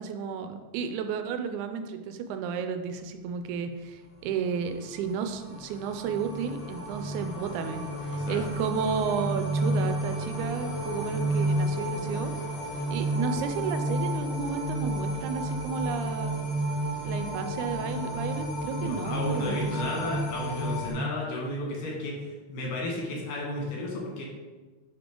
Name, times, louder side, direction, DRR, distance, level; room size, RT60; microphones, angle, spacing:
voice 1, 0.0-12.3 12.7-16.4 17.0-20.2, right 6 dB, 85° right, 8 dB, 2.0 m, -33 dB
sound 1, 4.7-20.9, right 1 dB, 60° left, 3.2 m, -31 dB
voice 2, 8.1-8.4 18.8-24.3, left 1 dB, 80° left, -2 dB, 2.9 m, -33 dB
9.5 x 3.6 x 3.7 m, 1.3 s
omnidirectional pair, 3.5 m